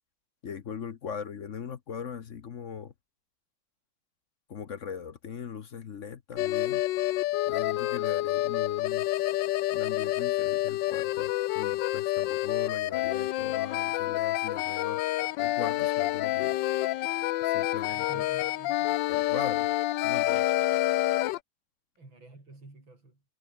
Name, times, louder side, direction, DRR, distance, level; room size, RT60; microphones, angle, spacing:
voice 1, 0.4-2.9 4.5-6.8 7.5-9.1 9.7-15.0 15.4-16.6 17.4-18.2 19.1-19.7 20.0-20.5, left 7 dB, 50° left, 1.1 m, -40 dB
sound 1, 6.4-21.4, left 16 dB, 75° left, 1.2 m, -28 dB
voice 2, 17.9-19.1 22.0-23.2, right 2 dB, 75° right, 7.8 m, -50 dB
omnidirectional pair, 2.2 m